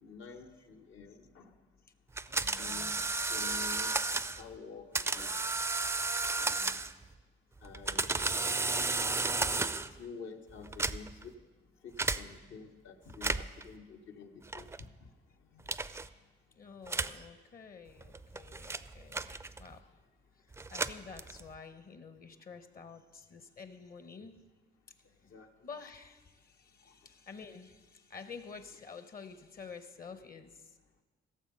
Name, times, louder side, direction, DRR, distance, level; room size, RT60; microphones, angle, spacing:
voice 1, 0.0-1.5 2.6-2.9 3.3-5.5 6.4-6.8 7.6-8.5 9.5-9.7 10.0-11.3 11.8-14.7 15.5-15.7 25.3-25.5, left 5 dB, 75° left, 4 dB, 1.2 m, -49 dB
sound 1, 2.2-4.4 4.9-7.1 7.6-10.0 10.6-11.3 12.0-12.2 13.1-13.6 14.5-14.8 15.7-16.1 16.9-17.2 18.0-19.8 20.5-21.6, right 3 dB, 15° right, 0.4 m, -33 dB
voice 2, 2.3-3.2 16.5-19.9 20.4-24.5 25.2-30.8, left 5 dB, 45° left, 10 dB, 0.9 m, -50 dB
16.5 x 7.0 x 5.5 m, 1.3 s
cardioid pair, 90°, 20 cm